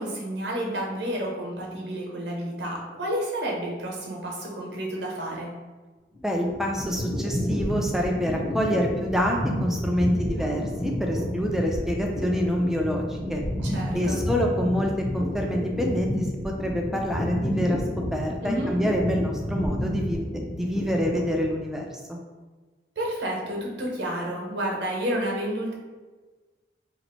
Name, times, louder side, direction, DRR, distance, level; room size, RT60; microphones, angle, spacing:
voice 1, 0.0-5.5 13.6-14.2 18.4-18.7 23.0-25.7, right 1 dB, 80° right, -1 dB, 0.9 m, -30 dB
sound 1, 6.1-21.6, equal, 25° left, 0.8 m, -30 dB
voice 2, 6.2-13.4 13.9-17.8 18.1-20.3 20.5-22.2, equal, 5° right, 0 dB, 0.4 m, -27 dB
3.0 x 2.5 x 4.2 m, 1.3 s
head